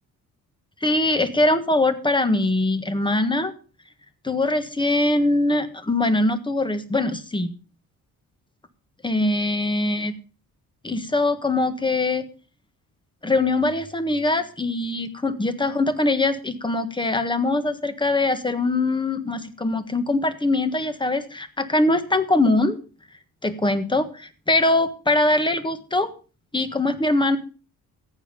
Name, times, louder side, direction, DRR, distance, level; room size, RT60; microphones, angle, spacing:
voice 1, 0.8-3.5 4.2-7.5 9.0-10.1 10.8-12.2 13.2-22.8 23.4-26.1 26.5-27.4, left 2 dB, 15° left, 11 dB, 1.5 m, -22 dB
14.5 x 8.9 x 5.3 m, 0.36 s
cardioid pair, 110°, 35 cm